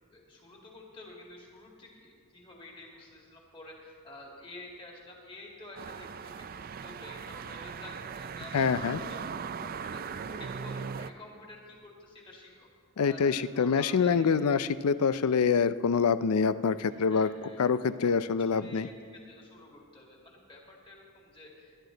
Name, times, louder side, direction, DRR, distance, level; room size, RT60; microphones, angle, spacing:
voice 1, 0.1-9.2 9.6-12.7 13.0-14.2 15.2-15.4 16.8-17.6 18.0-18.1 18.5-18.9 19.3-21.8, left 2 dB, 25° left, -1 dB, 2.2 m, -50 dB
sound 1, 5.8-11.1, right 6 dB, 40° right, 0.3 m, -39 dB
voice 2, 8.5-9.0 13.0-17.3 17.6-18.9, left 5 dB, 85° left, 15 dB, 0.5 m, -26 dB
19.5 x 11.0 x 3.9 m, 2.2 s
head